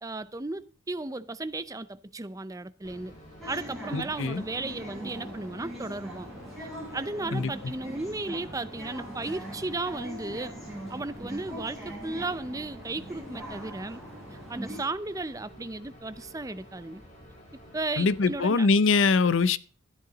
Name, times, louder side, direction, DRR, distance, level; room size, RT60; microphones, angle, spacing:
voice 1, 0.0-3.1 3.5-6.3 6.9-10.6 10.9-14.0 14.5-17.0 17.7-18.7, right 2 dB, 15° right, 0.5 m, -35 dB
sound 1, 2.8-18.4, equal, 35° left, 5.7 m, -51 dB
sound 2, 3.4-14.8, equal, ahead, 6.0 m, -41 dB
voice 2, 3.9-4.4 7.3-7.5 18.0-19.6, left 4 dB, 70° left, 0.6 m, -23 dB
13.5 x 10.5 x 4.0 m
head